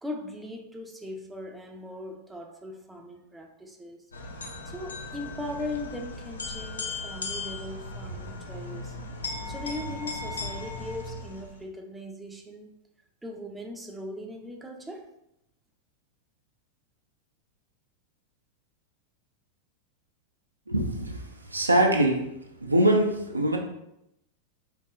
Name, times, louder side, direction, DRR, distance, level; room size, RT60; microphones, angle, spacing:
voice 1, 0.0-4.0 4.7-9.0 9.4-12.7 13.2-15.1, left 1 dB, 10° right, 2 dB, 0.5 m, -39 dB
sound 1, 4.1-11.6, left 3 dB, 75° left, 0.4 m, -37 dB
voice 2, 20.7-22.3 22.6-23.6, right 1 dB, 85° right, 2 dB, 0.4 m, -23 dB
4.6 x 2.9 x 2.2 m, 0.83 s
figure-of-eight pair, 90°, 0 cm